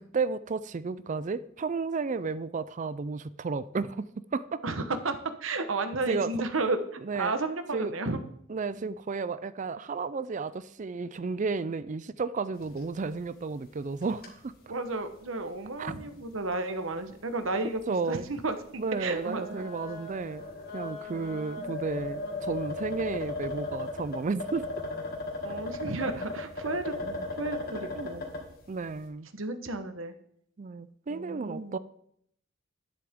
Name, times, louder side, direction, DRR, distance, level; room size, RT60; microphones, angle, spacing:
voice 1, 0.0-4.6 6.1-6.3 7.1-7.3 7.7-7.9 8.5-14.5 15.8-15.9 17.9-18.2 18.8-20.5 20.7-24.7 27.0-27.3 28.0-28.1 28.7-29.3 30.6-31.8, right 4 dB, 40° right, 0.4 m, -33 dB
voice 2, 4.6-8.2 8.8-8.9 14.7-17.8 18.1-19.7 21.1-21.8 25.4-26.9 27.4-28.2 29.3-30.1 31.1-31.8, right 3 dB, 75° right, 1.1 m, -33 dB
sound 1, 12.6-13.1 13.3-13.4 13.9-14.3 14.9-15.0 15.9-16.0 16.4-16.5 17.7-17.8 18.9-28.5, left 2 dB, 50° left, 2.2 m, -36 dB
11.0 x 10.5 x 3.7 m
head